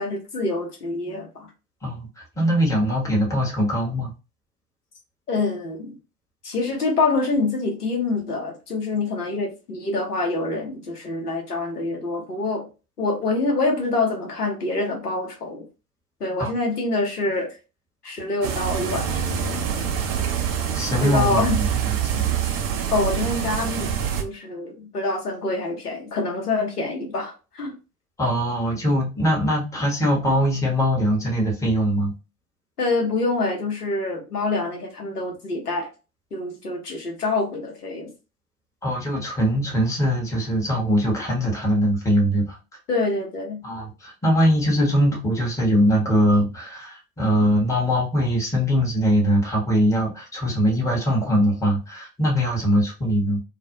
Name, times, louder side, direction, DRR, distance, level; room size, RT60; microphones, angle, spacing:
voice 1, 0.0-1.5 5.3-5.9 6.4-12.6 13.0-15.6 16.2-17.6 18.0-19.2 21.0-21.6 22.9-23.9 24.2-27.7 32.8-35.9 36.3-38.1 42.9-43.6, left 3 dB, 90° left, 1 dB, 0.8 m, -26 dB
voice 2, 1.8-4.1 16.4-16.5 20.7-22.3 28.2-32.1 38.8-42.6 43.6-53.4, equal, 5° left, -1 dB, 0.8 m, -22 dB
sound 1, 18.4-24.2, right 8 dB, 35° right, 0.4 m, -25 dB
2.3 x 2.0 x 2.7 m, 0.31 s
figure-of-eight pair, 80°, 45 cm